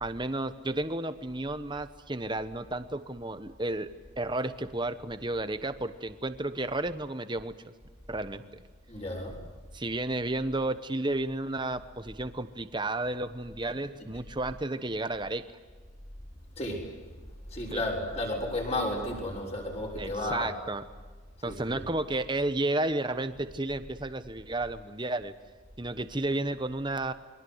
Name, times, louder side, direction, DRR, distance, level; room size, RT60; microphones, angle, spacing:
voice 1, 0.0-3.9 4.2-7.7 8.1-8.6 9.7-15.4 17.7-17.8 20.0-20.8 21.4-25.3 25.8-27.1, right 2 dB, 20° right, 11 dB, 1.1 m, -32 dB
voice 2, 8.9-9.4 16.6-17.0 17.5-20.5 21.4-21.8, left 1 dB, 30° left, -1 dB, 6.5 m, -33 dB
29.0 x 23.5 x 8.1 m, 1.4 s
head